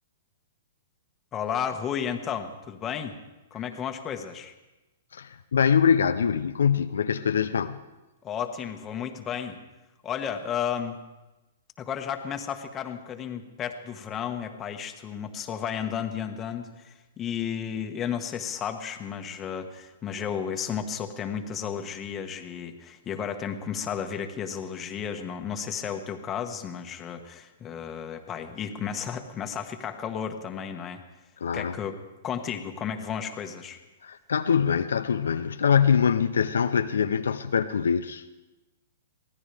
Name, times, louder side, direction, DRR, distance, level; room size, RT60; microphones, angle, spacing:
voice 1, 1.3-3.2 3.5-4.5 8.2-9.6 10.0-11.0 11.8-31.0 31.5-32.0 32.2-33.8, left 8 dB, 25° left, 5 dB, 1.5 m, -33 dB
voice 2, 5.1-7.8 31.4-31.8 34.0-38.2, left 7 dB, 80° left, 9 dB, 0.6 m, -24 dB
23.5 x 16.5 x 3.5 m, 1.1 s
hypercardioid pair, 125°, 0 cm